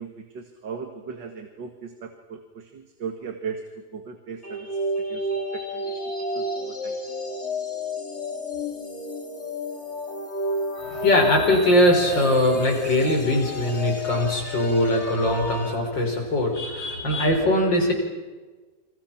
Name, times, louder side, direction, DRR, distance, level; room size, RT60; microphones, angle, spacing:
voice 1, 0.0-4.7 5.1-5.2 5.5-6.0 6.3-7.0, right 6 dB, 80° right, 6 dB, 2.4 m, -37 dB
sound 1, 4.4-15.7, left 1 dB, 35° left, 3.8 m, -31 dB
voice 2, 10.8-17.9, left 1 dB, 90° left, 1 dB, 5.8 m, -21 dB
28.5 x 26.5 x 5.9 m, 1.3 s
omnidirectional pair, 1.9 m